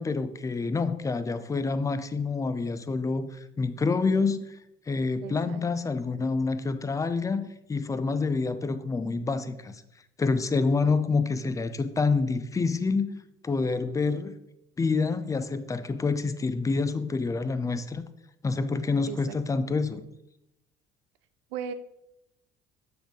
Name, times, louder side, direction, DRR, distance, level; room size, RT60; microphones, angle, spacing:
voice 1, 0.0-4.6 4.9-9.8 10.2-13.1 13.4-14.3 14.8-18.0 18.4-20.0, left 4 dB, 10° left, 0.3 m, -27 dB
voice 2, 5.2-5.6 19.1-19.4 21.5-21.7, right 7 dB, 70° right, 0.5 m, -36 dB
7.0 x 3.7 x 3.6 m
figure-of-eight pair, 55°, 31 cm